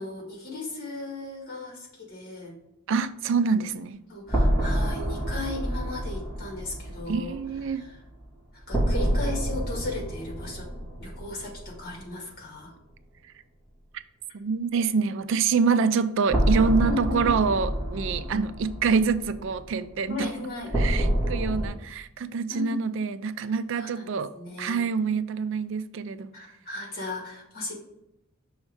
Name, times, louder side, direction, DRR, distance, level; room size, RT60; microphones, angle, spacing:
voice 1, 0.0-2.6 4.1-7.4 7.7-8.0 8.5-10.7 11.0-12.7 16.8-17.3 18.1-18.2 20.1-20.8 22.5-23.0 23.8-24.8 26.3-27.7, left 3 dB, 45° left, 1.9 m, -36 dB
voice 2, 2.9-4.0 7.1-7.8 13.9-14.0 14.3-20.3 20.8-24.3 24.6-26.3, right 5 dB, 60° right, 0.4 m, -26 dB
sound 1, 4.3-12.1 12.3-12.4 16.3-21.7, equal, 15° left, 2.3 m, -28 dB
6.3 x 3.1 x 4.8 m
head